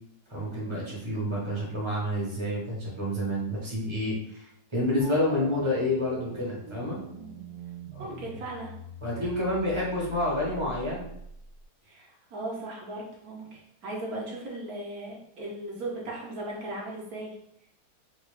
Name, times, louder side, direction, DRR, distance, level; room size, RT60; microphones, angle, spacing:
voice 1, 0.3-7.0 7.9-8.1 9.0-11.0, left 1 dB, 25° right, -5 dB, 0.7 m, -29 dB
sound 1, 5.0-11.7, right 2 dB, 90° right, 1.3 m, -43 dB
voice 2, 8.0-8.7 11.8-17.3, right 1 dB, 65° right, -3 dB, 1.1 m, -37 dB
3.9 x 2.3 x 3.2 m, 0.74 s
omnidirectional pair, 2.0 m